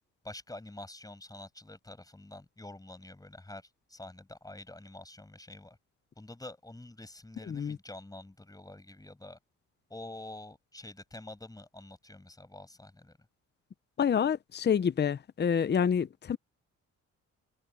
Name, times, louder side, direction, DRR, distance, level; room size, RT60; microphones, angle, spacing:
voice 1, 0.2-5.8 6.2-9.4 9.9-13.2, left 2 dB, 10° left, 7.5 m, -47 dB
voice 2, 7.5-7.8 14.0-16.4, left 7 dB, 35° left, 0.8 m, -28 dB
cardioid pair, 90°, 30 cm